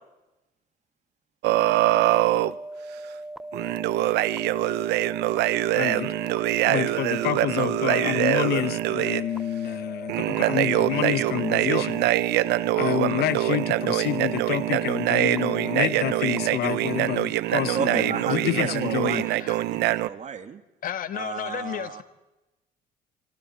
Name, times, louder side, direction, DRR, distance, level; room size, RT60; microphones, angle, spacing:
sound 1, 1.4-2.5 3.5-9.2 10.1-20.1, right 15 dB, 80° right, 0.7 m, -24 dB
sound 2, 2.4-16.6, right 2 dB, ahead, 0.6 m, -39 dB
voice 1, 5.7-6.1 6.7-12.1 12.7-19.2, left 13 dB, 70° left, 1.0 m, -28 dB
voice 2, 17.7-20.6 21.1-22.0, right 7 dB, 45° right, 1.9 m, -33 dB
voice 3, 20.8-22.0, left 9 dB, 55° left, 1.6 m, -33 dB
27.0 x 24.0 x 4.3 m
cardioid pair, 110°, 17 cm